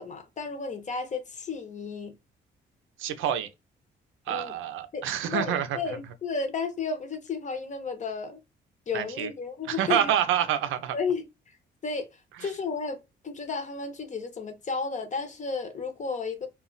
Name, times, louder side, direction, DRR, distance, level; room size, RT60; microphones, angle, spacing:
voice 1, 0.0-2.1 4.3-4.5 4.9-5.0 5.3-8.4 8.9-10.1 10.9-11.6 11.8-16.5, left 4 dB, 35° left, 0.7 m, -33 dB
voice 2, 3.0-3.5 4.3-5.8 8.9-9.3 9.7-11.0 12.4-12.5, right 10 dB, 85° right, 0.5 m, -27 dB
2.3 x 2.1 x 3.7 m
cardioid pair, 90°, 20 cm